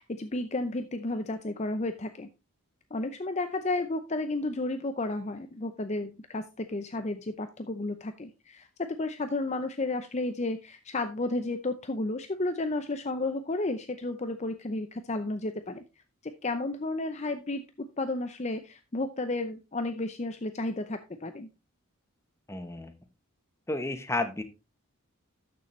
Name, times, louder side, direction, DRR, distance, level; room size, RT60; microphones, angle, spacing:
voice 1, 0.0-2.3 2.9-15.8 16.4-17.6 18.0-21.5, left 2 dB, 30° left, 9 dB, 0.6 m, -32 dB
voice 2, 22.5-22.9 23.7-24.4, left 2 dB, 15° left, 8 dB, 0.9 m, -31 dB
12.5 x 6.8 x 3.1 m, 0.26 s
head